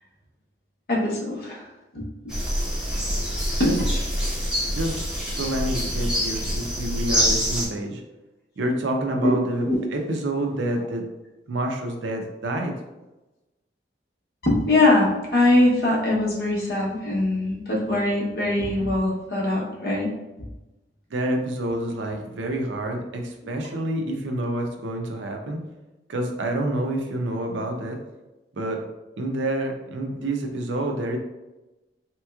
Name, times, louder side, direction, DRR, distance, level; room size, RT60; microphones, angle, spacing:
voice 1, 0.9-1.7 1.9-2.0 3.6-3.7 9.2-9.3 9.6-9.8 14.4-20.1, left 2 dB, 55° left, -3 dB, 0.8 m, -22 dB
sound 1, 2.3-7.7, equal, 5° right, 0.7 m, -25 dB
voice 2, 4.6-5.0 5.3-8.0 8.6-11.1 11.5-12.8 21.1-25.6 26.1-28.0 28.5-28.8 29.2-31.2, right 1 dB, 80° right, 3 dB, 0.5 m, -28 dB
3.4 x 3.0 x 2.3 m, 1.0 s
head